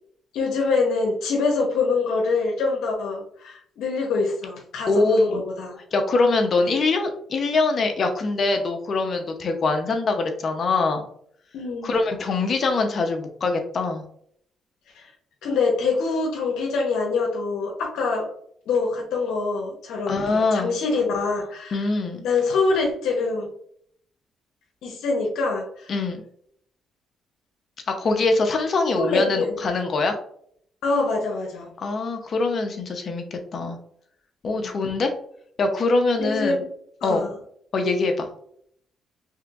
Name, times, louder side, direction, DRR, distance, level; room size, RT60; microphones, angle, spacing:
voice 1, 0.3-5.8 11.5-12.0 14.9-15.1 15.4-18.3 18.7-21.8 22.2-23.5 24.8-25.9 29.0-29.6 30.8-31.7 34.6-34.9 36.2-36.7 37.0-37.3, left 4 dB, 85° left, 0 dB, 0.9 m, -25 dB
voice 2, 4.9-5.4 5.9-11.1 11.8-14.0 20.1-20.8 21.7-22.3 25.9-26.2 27.9-30.2 31.8-33.8 34.4-35.1 35.6-36.6 37.0-37.3 37.7-38.3, left 3 dB, 50° left, 5 dB, 0.8 m, -23 dB
4.3 x 3.4 x 2.5 m, 0.65 s
cardioid pair, 90°, 0 cm